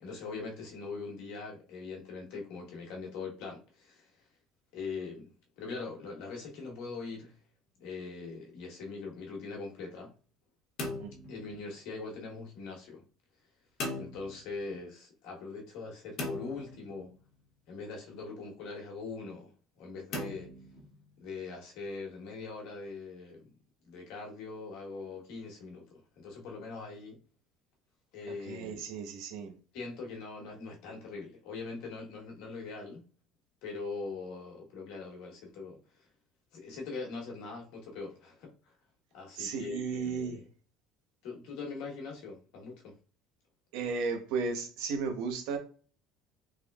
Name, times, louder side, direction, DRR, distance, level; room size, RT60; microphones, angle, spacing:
voice 1, 0.0-4.2 4.7-7.4 7.8-10.1 11.3-13.0 13.9-17.1 17.7-20.5 21.2-23.5 23.8-27.2 28.1-28.8 29.7-33.0 33.6-36.1 36.5-38.5 39.1-40.4 41.2-43.0, left 4 dB, 65° left, 1.1 m, -42 dB
sound 1, 10.8-12.1 13.8-14.8 16.2-17.4 20.1-21.3, left 2 dB, 45° left, 0.8 m, -40 dB
voice 2, 28.3-29.5 39.4-40.4 43.7-45.6, right 5 dB, 70° right, 0.7 m, -35 dB
3.5 x 3.0 x 2.3 m
cardioid pair, 170°, 0 cm